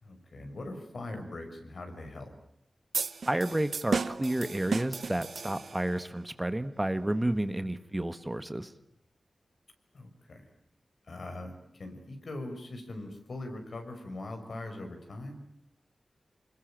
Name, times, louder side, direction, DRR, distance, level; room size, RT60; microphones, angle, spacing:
voice 1, 0.0-2.3 9.9-10.4 11.1-15.4, left 2 dB, 70° left, 5 dB, 5.8 m, -41 dB
sound 1, 2.9-6.0, right 5 dB, 80° right, 0.9 m, -34 dB
voice 2, 3.2-8.7, right 1 dB, 15° right, 11 dB, 1.5 m, -31 dB
25.5 x 21.0 x 9.0 m, 0.77 s
wide cardioid pair, 65°, 0 cm